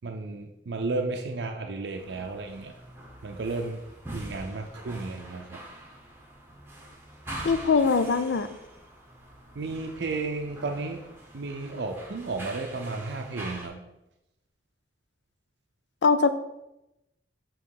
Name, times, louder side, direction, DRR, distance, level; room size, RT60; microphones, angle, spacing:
voice 1, 0.0-2.7 3.2-3.8 4.1-5.6 9.6-11.0 11.3-13.8, right 3 dB, 75° right, 4 dB, 0.5 m, -33 dB
sound 1, 1.9-13.7, right 1 dB, 15° right, 0.9 m, -44 dB
voice 2, 7.4-8.5 16.0-16.3, left 5 dB, 80° left, 11 dB, 0.5 m, -22 dB
7.1 x 3.1 x 4.7 m, 0.90 s
head